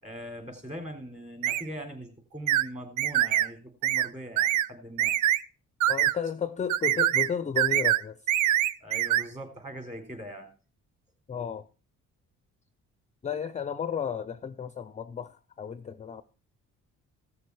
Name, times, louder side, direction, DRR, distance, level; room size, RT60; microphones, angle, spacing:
voice 1, 0.0-5.1 8.8-10.5, equal, 25° right, 3.6 m, -41 dB
sound 1, 1.4-1.6 2.5-2.7 3.0-3.5 3.8-4.1 4.4-4.7 5.0-5.4 5.8-6.1 6.7-7.3 7.6-8.0 8.3-9.2, right 12 dB, 75° right, 0.5 m, -24 dB
voice 2, 5.9-8.2 11.3-11.7 13.2-16.2, left 7 dB, 25° left, 0.5 m, -33 dB
15.5 x 6.7 x 4.7 m
cardioid pair, 90°, 30 cm